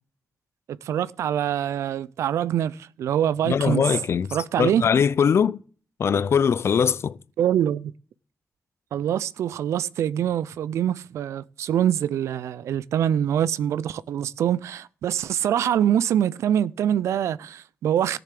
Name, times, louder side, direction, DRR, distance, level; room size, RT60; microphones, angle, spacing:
voice 1, 0.8-3.8 4.3-4.9 7.4-7.9 8.9-18.2, right 10 dB, 85° right, 0.5 m, -24 dB
voice 2, 3.4-4.3 4.6-5.6 6.0-7.2, left 7 dB, 65° left, 0.5 m, -21 dB
14.0 x 6.9 x 7.6 m
cardioid pair, 55°, 5 cm